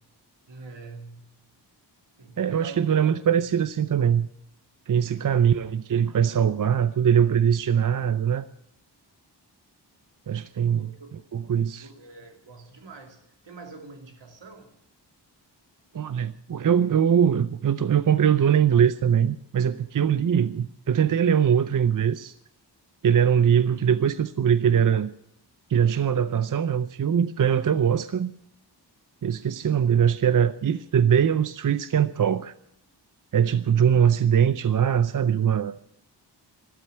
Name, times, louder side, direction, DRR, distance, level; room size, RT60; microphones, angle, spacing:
voice 1, 0.5-1.3 2.2-3.3 10.7-11.1 11.7-14.7, right 3 dB, 80° right, 2.7 m, -45 dB
voice 2, 2.4-4.3 4.9-8.5 10.3-10.9 11.3-11.9 15.9-22.3 23.0-25.1 25.7-28.3 29.2-32.5 33.3-35.8, right 8 dB, 45° right, 0.6 m, -22 dB
13.5 x 12.5 x 8.7 m
wide cardioid pair, 85°, 43 cm